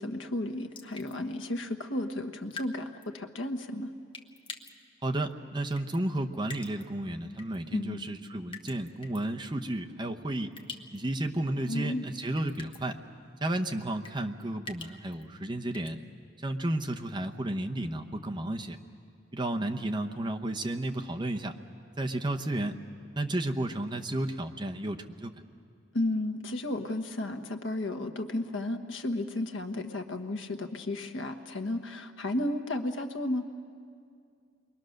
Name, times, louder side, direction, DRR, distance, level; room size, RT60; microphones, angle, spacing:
voice 1, 0.0-3.9 7.7-8.0 11.7-12.1 25.9-33.4, left 1 dB, 70° left, 7 dB, 1.2 m, -33 dB
sound 1, 0.7-1.2 2.5-2.7 3.0-3.1 4.1-4.7 5.7-6.0 6.5-6.8 7.4-7.6 8.5-9.2 10.5-11.0 11.3-11.4 12.4-12.9 14.0-15.2 15.7-15.9, left 4 dB, 25° left, 1.0 m, -44 dB
voice 2, 5.0-10.5 10.9-13.0 13.4-16.0 16.4-18.8 19.3-21.6 22.0-22.8 23.1-25.3, right 1 dB, 20° right, 4 dB, 0.8 m, -32 dB
28.5 x 22.5 x 6.5 m, 2.3 s
head